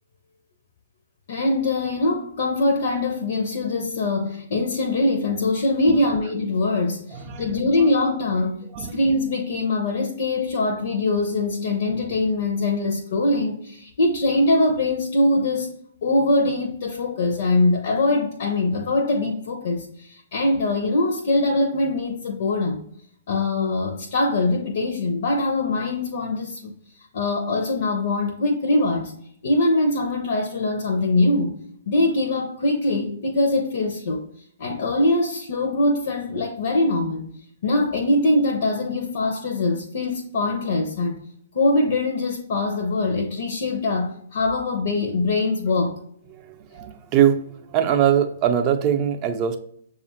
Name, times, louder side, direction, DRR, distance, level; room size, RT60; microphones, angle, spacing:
voice 1, 1.3-15.7 16.0-22.8 23.3-26.7 27.1-29.1 29.4-31.6 31.9-34.2 34.6-37.3 37.6-41.2 41.5-46.0, left 2 dB, 55° left, 0.7 m, -22 dB
voice 2, 7.1-7.5 8.7-9.0 46.7-49.6, right 9 dB, 30° right, 0.5 m, -22 dB
6.8 x 2.4 x 2.9 m
figure-of-eight pair, 115°, 0 cm